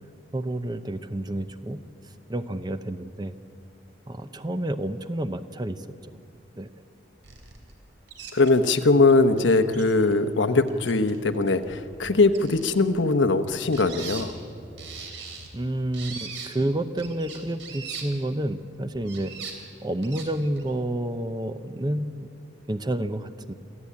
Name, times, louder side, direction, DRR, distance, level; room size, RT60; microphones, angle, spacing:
voice 1, 0.3-1.8 2.3-3.3 4.1-5.9 6.6-6.7 15.5-19.3 19.8-22.3 22.7-23.5, right 1 dB, 20° right, 11 dB, 0.6 m, -29 dB
sound 1, 7.2-7.8 8.1-8.5 9.1-9.2 9.4-9.5 9.7-10.1 10.5-11.2 11.5-12.8 13.5-14.3 14.8-15.5 15.9-16.5 17.0-18.0 18.9-19.5 20.0-20.3 20.6-20.7, right 6 dB, 85° right, 3.4 m, -40 dB
voice 2, 8.3-14.3, left 3 dB, 80° left, 9 dB, 1.0 m, -21 dB
26.5 x 14.0 x 8.5 m, 2.6 s
head